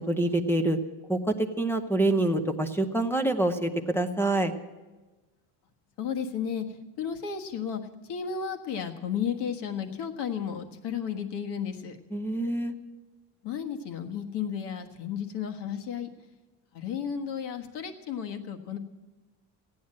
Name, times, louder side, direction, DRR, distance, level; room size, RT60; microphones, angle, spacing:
voice 1, 0.1-0.8 1.1-4.5 12.1-12.7, right 2 dB, 5° left, 7 dB, 0.7 m, -26 dB
voice 2, 6.0-6.6 7.0-7.8 8.1-12.0 13.4-16.1 16.7-18.8, left 7 dB, 65° left, 5 dB, 1.5 m, -33 dB
15.5 x 9.6 x 7.6 m, 1.2 s
cardioid pair, 150°, 44 cm